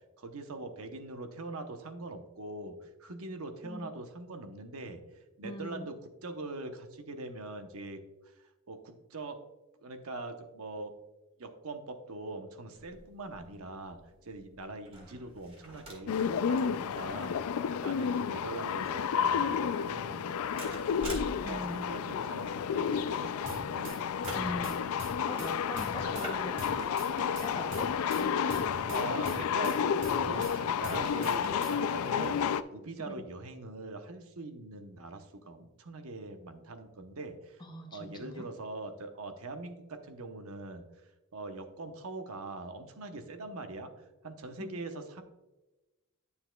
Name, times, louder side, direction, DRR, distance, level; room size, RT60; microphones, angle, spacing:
voice 1, 0.2-5.0 5.4-6.0 6.2-8.0 8.7-9.4 9.8-10.9 11.4-14.0 14.2-17.4 17.7-20.9 21.2-24.0 28.9-29.8 30.2-32.4 32.7-37.6 37.9-40.8 41.3-43.9 44.2-45.2, right 2 dB, 85° right, 7 dB, 0.9 m, -42 dB
voice 2, 5.4-5.9 21.4-22.0 24.3-26.9 27.3-28.7 33.0-33.3 37.6-38.5 44.6-44.8, left 1 dB, 20° left, 5 dB, 0.7 m, -42 dB
sound 1, 12.8-28.2, right 1 dB, 25° right, 1.8 m, -49 dB
sound 2, 16.1-32.6, left 7 dB, 80° left, 0.3 m, -31 dB
sound 3, 23.4-26.3 26.6-30.6 30.8-31.8, right 2 dB, 60° right, 1.4 m, -43 dB
10.0 x 6.9 x 2.3 m, 1.0 s
head